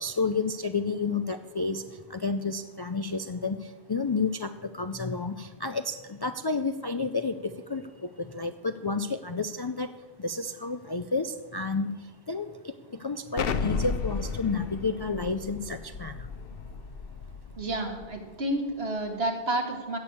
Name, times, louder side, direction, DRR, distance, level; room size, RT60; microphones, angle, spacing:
voice 1, 0.0-9.9 10.2-12.0 12.3-12.5 13.0-16.3, left 3 dB, 40° left, 9 dB, 0.3 m, -31 dB
Explosion, 13.4-18.1, left 5 dB, 65° left, 0.9 m, -34 dB
voice 2, 17.6-20.0, right 1 dB, 70° right, 3 dB, 2.1 m, -30 dB
16.0 x 6.3 x 8.4 m, 1.3 s
omnidirectional pair, 1.1 m